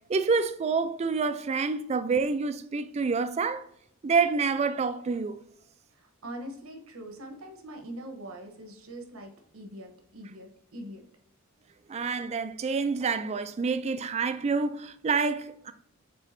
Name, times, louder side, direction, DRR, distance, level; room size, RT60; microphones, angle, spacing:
voice 1, 0.1-3.6 4.0-5.4 11.9-15.7, right 4 dB, 30° right, 0.3 m, -27 dB
voice 2, 6.0-11.0, right 1 dB, 85° right, 1.0 m, -43 dB
5.2 x 3.7 x 2.6 m
head